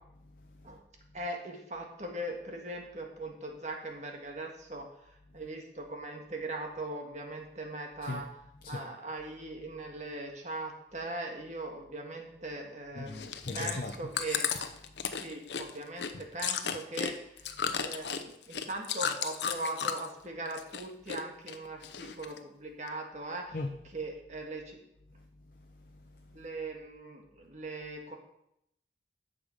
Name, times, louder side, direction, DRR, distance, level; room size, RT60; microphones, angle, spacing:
voice 1, 0.2-0.8 8.0-8.3 8.6-8.8 12.9-14.0 14.9-15.1 17.6-17.7 23.5-23.8 25.1-26.4, left 2 dB, 50° left, 3 dB, 0.8 m, -41 dB
voice 2, 1.1-8.3 8.7-14.5 15.0-23.6 23.9-24.8 26.3-28.2, right 2 dB, 40° right, 2 dB, 1.7 m, -40 dB
Chewing mastication, 13.1-20.2 20.5-21.2 21.5-22.4 22.9-23.0, left 7 dB, 75° left, 0.8 m, -34 dB
10.5 x 6.9 x 5.4 m, 0.78 s
head